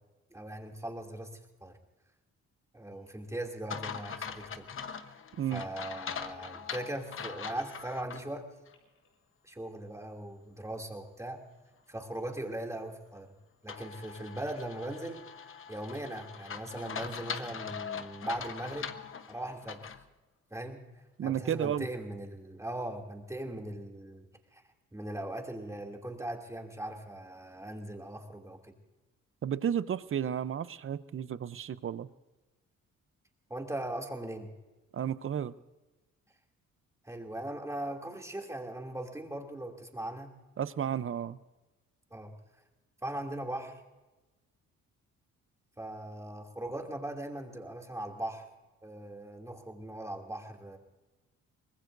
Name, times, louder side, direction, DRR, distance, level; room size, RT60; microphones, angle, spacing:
voice 1, 0.3-1.8 2.7-4.7 5.0-5.2 5.5-8.5 9.4-11.4 11.9-13.3 13.6-15.2 15.7-19.0 19.3-19.9 20.5-20.8 21.2-24.3 24.5-24.6 24.9-28.7 33.5-34.5 37.0-40.3 42.1-42.3 43.0-43.8 45.8-48.5 48.8-50.8, right 1 dB, 10° right, 1 dB, 2.7 m, -39 dB
Telephone, 2.9-3.2 3.5-4.6 5.1-5.2 5.6-5.7 6.2-7.3 8.5-9.1, left 3 dB, 85° left, 4.2 m, -63 dB
sound 1, 3.7-8.2 8.7-8.8 13.7-20.0, left 7 dB, 45° left, 1.1 m, -41 dB
voice 2, 21.2-21.9 29.4-32.1 34.9-35.5 40.6-41.4, right 9 dB, 45° right, 15 dB, 0.7 m, -32 dB
24.0 x 19.5 x 2.6 m, 1.1 s
cardioid pair, 90°, 30 cm